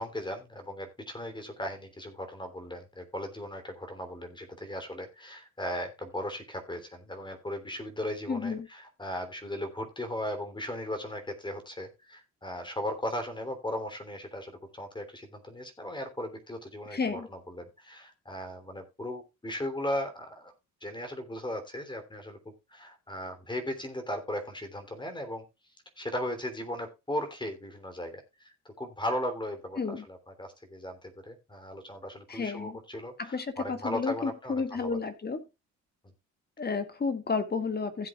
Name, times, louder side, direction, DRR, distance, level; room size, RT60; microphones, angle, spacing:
voice 1, 0.0-20.5 20.8-22.4 22.7-25.4 26.0-35.0, left 1 dB, 15° left, 3.2 m, -37 dB
voice 2, 8.3-8.7 16.9-17.3 29.8-30.0 32.3-32.8 33.2-35.4 36.6-38.1, left 4 dB, 35° left, 1.9 m, -31 dB
16.0 x 7.8 x 2.4 m
cardioid pair, 90°, 30 cm